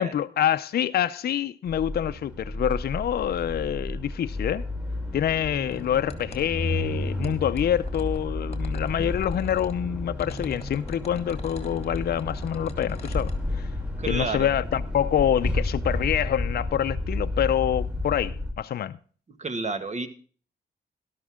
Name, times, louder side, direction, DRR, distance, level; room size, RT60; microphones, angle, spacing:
voice 1, 0.0-4.6 5.1-13.7 14.0-19.0, left 10 dB, 60° left, 0.5 m, -26 dB
sound 1, 1.7-18.5, left 1 dB, 5° right, 3.2 m, -31 dB
sound 2, 5.3-6.4 7.2-9.8 10.2-13.4, left 4 dB, 35° left, 2.1 m, -43 dB
voice 2, 14.0-14.5 19.4-20.1, right 3 dB, 40° right, 1.7 m, -30 dB
12.5 x 12.0 x 3.6 m
cardioid pair, 75°, 18 cm